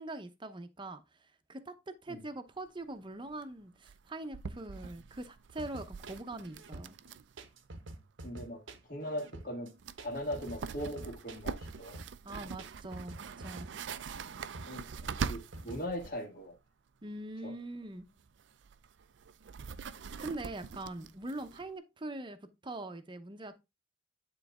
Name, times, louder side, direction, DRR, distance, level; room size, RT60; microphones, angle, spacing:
voice 1, 0.0-7.0 12.2-13.7 17.0-18.1 19.9-22.4 22.6-23.6, right 2 dB, 25° right, 0.7 m, -43 dB
sound 1, 2.6-2.7 2.8-2.9 3.2-3.4 3.8-7.4 7.6-7.7 9.4-9.5 9.8-16.2 18.0-21.7, right 5 dB, 70° right, 0.4 m, -43 dB
sound 2, 5.6-15.8, right 2 dB, 90° right, 1.0 m, -48 dB
voice 2, 8.2-8.6 8.9-9.7 10.0-12.0 14.7-14.8 15.2-16.6 17.4-17.5, equal, 50° left, 1.8 m, -39 dB
9.4 x 4.0 x 3.5 m
head